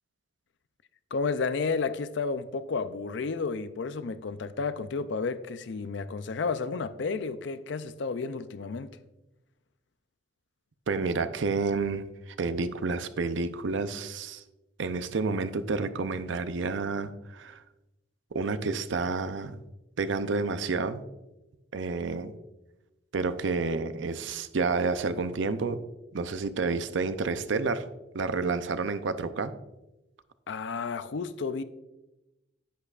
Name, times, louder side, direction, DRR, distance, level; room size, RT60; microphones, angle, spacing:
voice 1, 1.1-9.0 30.5-31.6, left 4 dB, 65° left, 0.5 m, -32 dB
voice 2, 10.9-14.4 14.8-17.6 18.3-19.6 20.0-21.0 21.7-22.3 23.1-25.8 26.1-27.9 28.1-29.5, right 4 dB, 75° right, 0.5 m, -30 dB
10.0 x 8.4 x 2.5 m
head